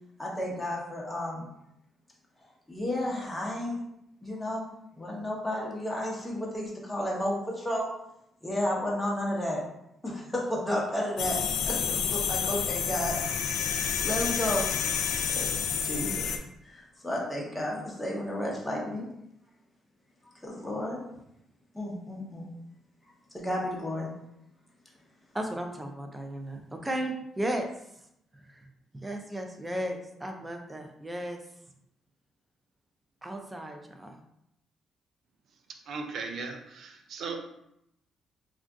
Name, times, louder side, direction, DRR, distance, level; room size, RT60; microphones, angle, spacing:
voice 1, 0.2-1.5 2.7-3.8 4.2-7.9 8.4-9.6 10.0-13.2 13.6-14.7 15.4-15.5 15.8-16.3 16.6-19.1 20.4-21.0 21.7-22.5 23.3-24.1, left 1 dB, 5° left, -4 dB, 0.9 m, -32 dB
sound 1, 11.2-16.4, left 7 dB, 85° left, 0.3 m, -29 dB
voice 2, 25.3-27.7 28.5-28.7 28.9-31.4 33.2-34.2, right 1 dB, 15° right, 3 dB, 0.5 m, -35 dB
voice 3, 35.9-37.4, right 4 dB, 65° right, 4 dB, 0.5 m, -37 dB
2.5 x 2.4 x 3.5 m, 0.79 s
cardioid pair, 90°, 0 cm